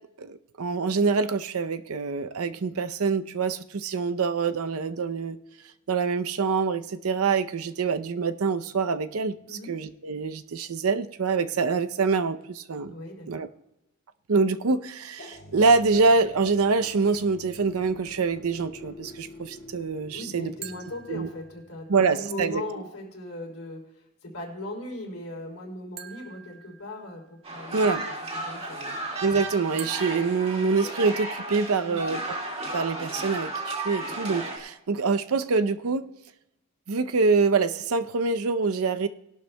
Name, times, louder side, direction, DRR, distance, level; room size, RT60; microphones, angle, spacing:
voice 1, 0.2-5.4 5.9-9.3 9.7-12.9 13.3-13.5 14.3-20.5 21.1-21.3 21.9-22.6 27.7-28.0 29.2-32.4 32.7-36.1 36.9-39.1, right 4 dB, 90° right, 10 dB, 0.6 m, -25 dB
voice 2, 12.9-13.4 20.1-23.8 24.2-28.1 28.4-28.9 31.8-32.0, left 1 dB, 75° left, 0 dB, 3.2 m, -38 dB
sound 1, 15.2-21.8, left 1 dB, 50° left, 2.1 m, -47 dB
sound 2, 20.6-21.9 26.0-27.5 29.8-31.5, right 8 dB, 50° right, 0.9 m, -45 dB
sound 3, 27.4-34.6, right 2 dB, 30° right, 2.0 m, -34 dB
20.5 x 11.5 x 2.2 m, 0.86 s
head